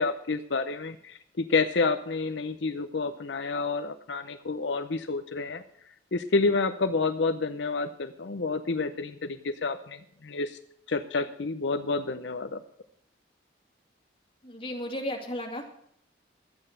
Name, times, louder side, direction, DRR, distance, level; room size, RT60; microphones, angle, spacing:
voice 1, 0.0-5.6 6.1-10.6 10.9-12.6, left 3 dB, 75° left, 8 dB, 0.7 m, -29 dB
voice 2, 14.4-15.7, left 1 dB, 30° left, 1 dB, 2.5 m, -34 dB
13.0 x 8.9 x 6.5 m, 0.70 s
head